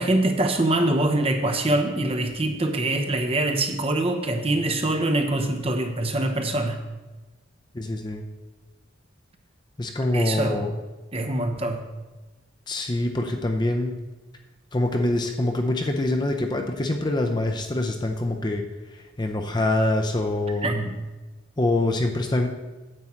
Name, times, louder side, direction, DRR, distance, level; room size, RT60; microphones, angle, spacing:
voice 1, 0.0-6.8 10.1-10.6 11.1-11.8 20.6-21.0, right 1 dB, 30° right, 4 dB, 0.9 m, -24 dB
voice 2, 7.7-8.2 9.8-10.7 12.7-13.9 14.7-18.6 18.9-20.7 21.6-22.5, left 2 dB, 20° left, 4 dB, 0.5 m, -25 dB
9.6 x 7.6 x 4.4 m, 1.2 s
head